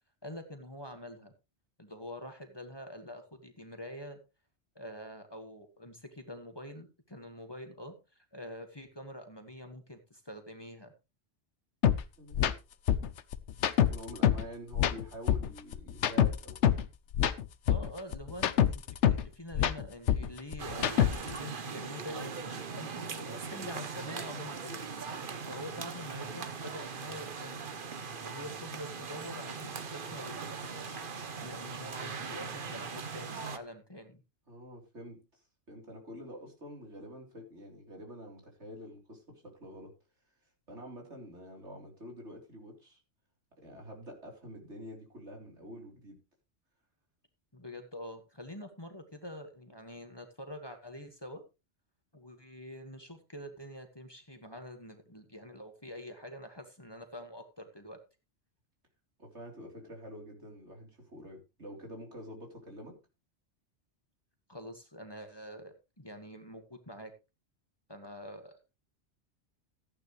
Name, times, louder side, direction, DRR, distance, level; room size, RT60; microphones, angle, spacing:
voice 1, 0.2-1.3 1.8-4.2 4.8-10.9 17.7-24.8 25.5-27.7 28.2-31.0 31.4-34.2 47.5-51.4 52.1-58.0 64.5-67.1 67.9-68.6, left 1 dB, 20° left, 5 dB, 1.8 m, -46 dB
sound 1, 11.8-12.0 12.3-12.5 12.9-14.5 14.7-16.9 17.1-19.3 19.5-21.4, left 9 dB, 85° left, 1.1 m, -26 dB
voice 2, 12.2-12.6 13.8-16.8 34.5-39.9 40.7-43.0 43.6-46.2 59.2-63.0, equal, 75° right, 1 dB, 4.1 m, -47 dB
sound 2, 20.6-33.6, right 5 dB, 50° right, 1.2 m, -40 dB
14.5 x 9.8 x 3.2 m, 0.27 s
omnidirectional pair, 1.2 m